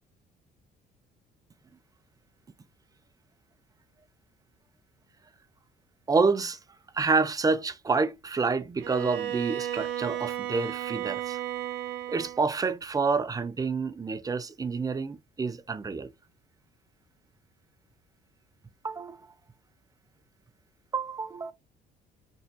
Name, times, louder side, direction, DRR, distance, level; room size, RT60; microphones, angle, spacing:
voice 1, 6.1-6.6 6.9-11.4 12.1-16.1 18.8-19.2 20.9-21.5, right 4 dB, 20° right, 0.6 m, -28 dB
Bowed string instrument, 8.8-12.5, right 12 dB, 85° right, 0.9 m, -34 dB
5.4 x 3.2 x 2.9 m
cardioid pair, 110°, 17 cm